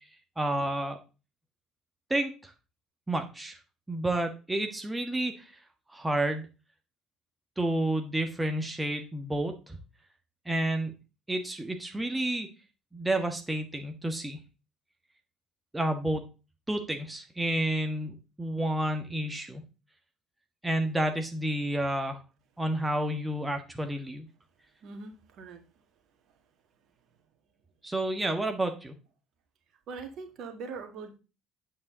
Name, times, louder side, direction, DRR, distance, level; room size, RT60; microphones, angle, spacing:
voice 1, 0.4-1.0 2.1-2.5 3.1-3.6 3.9-5.6 5.9-6.5 7.6-9.8 10.4-10.9 11.3-12.5 12.9-14.4 15.7-16.3 16.7-19.6 20.6-22.2 22.6-24.2 27.8-28.9, right 1 dB, 15° right, 5 dB, 1.5 m, -30 dB
voice 2, 24.8-25.6 29.9-31.1, right 4 dB, 55° right, 6 dB, 1.9 m, -41 dB
8.6 x 7.7 x 3.9 m, 0.32 s
figure-of-eight pair, 55°, 0 cm